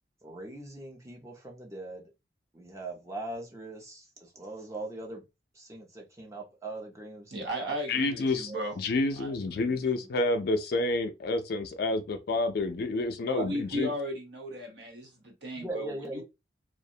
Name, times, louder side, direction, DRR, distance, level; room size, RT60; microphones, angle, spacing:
voice 1, 0.2-2.1 2.5-5.2 5.6-8.6 13.3-13.5 15.6-16.2, right 2 dB, 15° right, 0.5 m, -41 dB
voice 2, 7.3-8.8 9.1-9.8 13.2-16.2, equal, 70° right, 0.9 m, -36 dB
voice 3, 7.9-8.5 8.8-13.9, left 2 dB, 55° left, 0.4 m, -29 dB
2.4 x 2.0 x 2.7 m
head